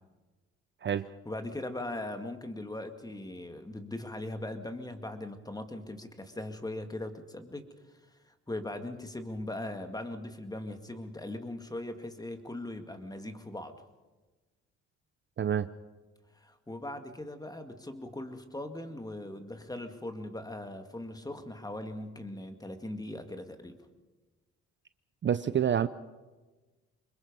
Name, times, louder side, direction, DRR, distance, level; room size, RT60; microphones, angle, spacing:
voice 1, 1.3-7.7 8.3-13.8 16.4-23.8, left 1 dB, 10° left, 7 dB, 2.1 m, -40 dB
voice 2, 15.4-15.7 25.2-25.9, right 9 dB, 40° right, 13 dB, 0.6 m, -27 dB
25.5 x 21.5 x 5.4 m, 1.2 s
cardioid pair, 90°, 30 cm